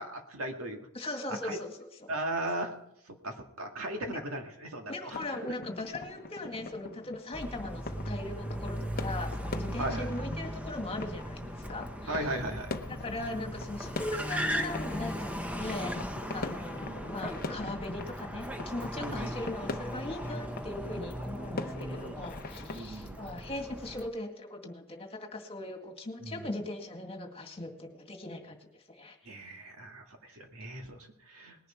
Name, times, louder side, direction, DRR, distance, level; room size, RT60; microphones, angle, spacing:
voice 1, 0.0-0.9 1.3-1.6 2.1-2.7 3.1-5.2 9.8-10.1 12.1-12.8 16.8-17.0 19.0-19.4 21.7-22.2 22.7-23.2 26.2-26.5 29.3-31.6, right 1 dB, 70° right, 3 dB, 2.1 m, -37 dB
voice 2, 0.9-2.1 4.1-4.2 4.9-12.4 12.9-15.9 16.3-28.6 28.9-29.2, left 2 dB, 25° left, 3 dB, 2.0 m, -39 dB
sound 1, 5.1-22.8, left 3 dB, 45° left, 0.9 m, -43 dB
Car, 7.3-24.1, equal, 5° right, 0.9 m, -38 dB
19.5 x 11.0 x 4.5 m, 0.76 s
head